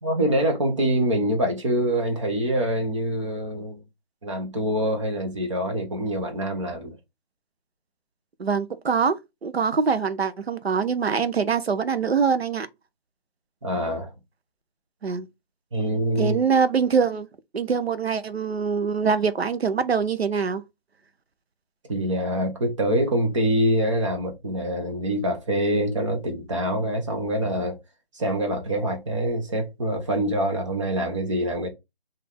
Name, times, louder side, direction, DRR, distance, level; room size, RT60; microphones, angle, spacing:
voice 1, 0.0-3.8 4.2-7.0 13.6-14.1 15.7-16.4 21.9-27.8 28.1-31.7, equal, 30° right, 1.0 m, -25 dB
voice 2, 8.4-12.7 15.0-15.3 16.2-17.3 17.5-20.6, right 6 dB, 85° right, 0.8 m, -24 dB
4.1 x 2.7 x 3.4 m
figure-of-eight pair, 160°, 30 cm